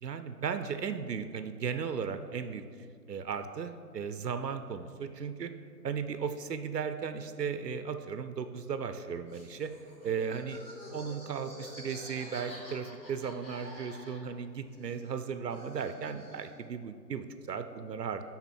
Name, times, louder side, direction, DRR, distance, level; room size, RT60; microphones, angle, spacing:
voice 1, 0.0-2.6 3.1-5.5 5.8-9.7 10.0-10.6 10.9-18.2, right 6 dB, 75° right, 9 dB, 0.6 m, -36 dB
Laughter, 9.3-14.4 14.7-16.6, equal, 10° left, 1.8 m, -49 dB
9.9 x 3.9 x 4.4 m, 2.2 s
figure-of-eight pair, 160°, 50 cm